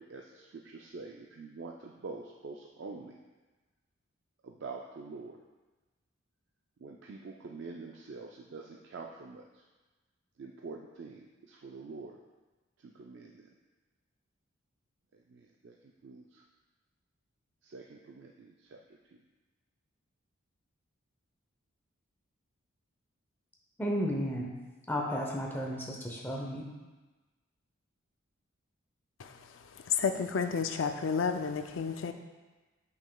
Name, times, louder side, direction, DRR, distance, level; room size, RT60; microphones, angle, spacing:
voice 1, 0.0-3.2 4.4-5.4 6.8-9.4 10.4-12.2 12.8-13.5 15.3-15.7 16.0-16.4 17.6-18.8, right 4 dB, 55° right, 0.4 m, -46 dB
voice 2, 23.8-24.5 24.9-26.7, equal, 10° left, 0.7 m, -33 dB
voice 3, 29.9-32.1, left 6 dB, 65° left, 0.4 m, -30 dB
7.7 x 5.9 x 2.3 m
head